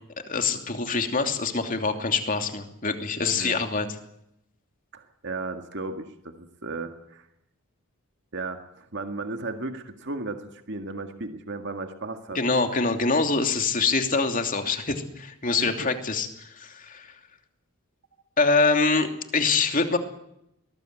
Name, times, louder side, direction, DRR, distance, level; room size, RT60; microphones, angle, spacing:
voice 1, 0.3-3.9 12.3-17.1 18.4-20.0, left 4 dB, 40° left, 5 dB, 2.8 m, -25 dB
voice 2, 3.3-3.7 4.9-7.3 8.3-12.4 15.6-15.9, right 3 dB, 55° right, 6 dB, 2.0 m, -35 dB
22.5 x 19.5 x 9.1 m, 0.80 s
head